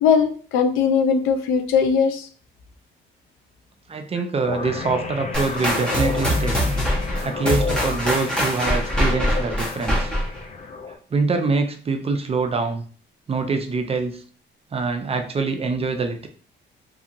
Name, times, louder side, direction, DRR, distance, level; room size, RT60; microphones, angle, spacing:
voice 1, 0.0-2.3, left 6 dB, 90° left, 6 dB, 0.5 m, -19 dB
voice 2, 3.9-6.6 7.2-10.1 11.1-12.8 13.3-14.2 14.7-16.3, right 4 dB, 30° right, 6 dB, 0.5 m, -24 dB
sound 1, 4.4-11.0, left 4 dB, 35° left, 0.5 m, -31 dB
sound 2, 5.3-10.4, equal, 5° left, 0.8 m, -23 dB
2.7 x 2.6 x 2.5 m, 0.43 s
cardioid pair, 90°, 20 cm